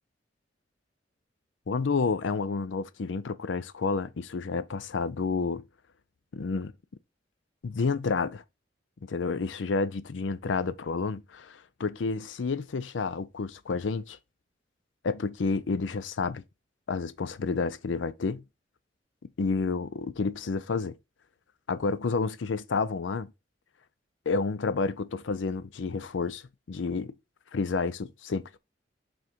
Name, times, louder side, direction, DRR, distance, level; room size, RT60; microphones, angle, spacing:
voice 1, 1.7-5.6 6.3-6.7 7.6-8.4 9.0-14.2 15.0-16.4 16.9-18.4 19.4-20.9 21.7-23.3 24.3-26.4 26.7-27.2 27.5-28.6, left 4 dB, 80° left, 0.5 m, -30 dB
6.2 x 3.7 x 4.4 m
head